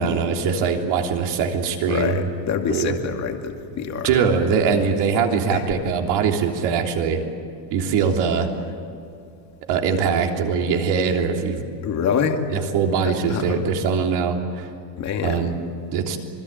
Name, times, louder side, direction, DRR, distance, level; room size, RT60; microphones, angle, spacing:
voice 1, 0.0-2.3 2.7-3.1 4.0-7.2 7.7-8.5 9.7-11.6 12.5-14.7 15.2-15.6 15.9-16.2, right 6 dB, 50° right, 2 dB, 3.4 m, -22 dB
voice 2, 1.9-4.1 5.5-5.6 11.8-12.4 13.3-13.6 15.0-15.5, left 7 dB, 35° left, 4 dB, 2.3 m, -25 dB
27.0 x 21.0 x 9.1 m, 2.4 s
cardioid pair, 155°, 50 cm